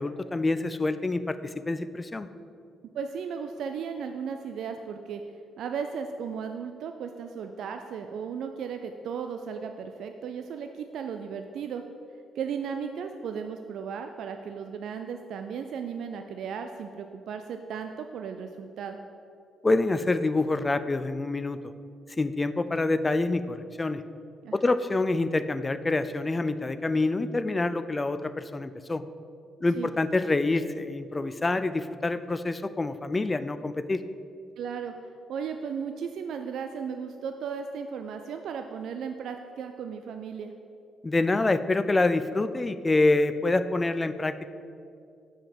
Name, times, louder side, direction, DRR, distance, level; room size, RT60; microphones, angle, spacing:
voice 1, 0.0-1.4 1.7-2.3 19.6-21.6 22.2-24.0 24.5-29.0 29.6-34.0 41.0-44.5, left 2 dB, 20° left, 12 dB, 0.4 m, -26 dB
voice 2, 2.9-5.2 5.6-11.8 12.4-19.0 24.4-24.7 29.7-29.9 34.6-34.9 35.3-40.5, right 6 dB, 75° right, 6 dB, 0.4 m, -35 dB
5.9 x 5.1 x 6.7 m, 2.4 s
cardioid pair, 90°, 0 cm